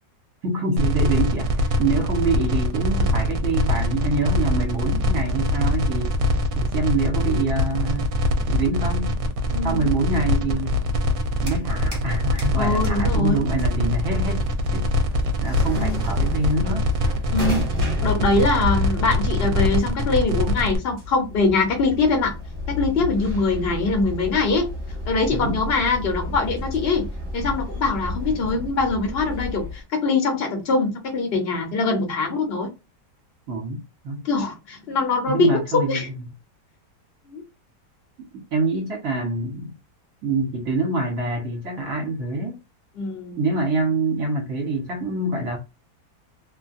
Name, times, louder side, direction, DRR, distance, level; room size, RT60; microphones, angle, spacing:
voice 1, 0.4-6.2 6.6-8.1 8.5-9.2 9.6-10.7 11.4-14.4 14.7-14.9 15.4-16.9 25.3-25.6 33.5-34.2 35.3-36.0 38.5-39.7 40.2-42.6 43.4-45.6, right 3 dB, 55° right, 1.3 m, -25 dB
sound 1, 0.8-20.8, left 1 dB, 75° right, 1.2 m, -23 dB
voice 2, 9.5-9.9 12.6-13.4 15.7-16.0 17.3-17.6 18.0-22.3 22.7-24.7 25.1-27.1 27.3-32.7 34.2-36.1 37.3-37.4 42.9-43.4, left 3 dB, 45° left, 1.0 m, -23 dB
sound 2, 11.0-12.1 12.4-29.8, left 1 dB, 20° right, 1.1 m, -33 dB
2.9 x 2.2 x 2.5 m
omnidirectional pair, 1.9 m